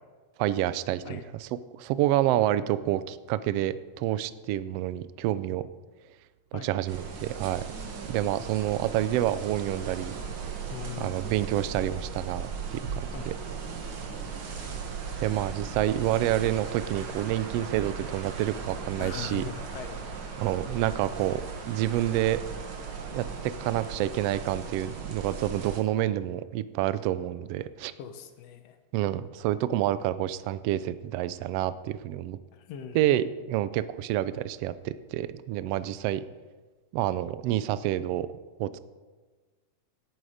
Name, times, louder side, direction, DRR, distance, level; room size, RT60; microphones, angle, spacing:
voice 1, 0.4-1.5 1.8-5.7 6.5-7.7 8.1-10.2 11.0-13.3 15.2-19.4 20.4-22.4 23.1-27.9 28.9-32.4 32.9-36.2 36.9-38.3 38.6-38.8, right 13 dB, 80° right, 14 dB, 1.4 m, -28 dB
sound 1, 6.9-25.8, right 5 dB, 50° right, 1.9 m, -37 dB
voice 2, 10.7-11.2 13.1-13.3 19.0-20.0 28.0-28.8 32.5-33.0, left 8 dB, 65° left, 8 dB, 1.9 m, -40 dB
17.5 x 9.3 x 5.0 m, 1.3 s
omnidirectional pair, 3.4 m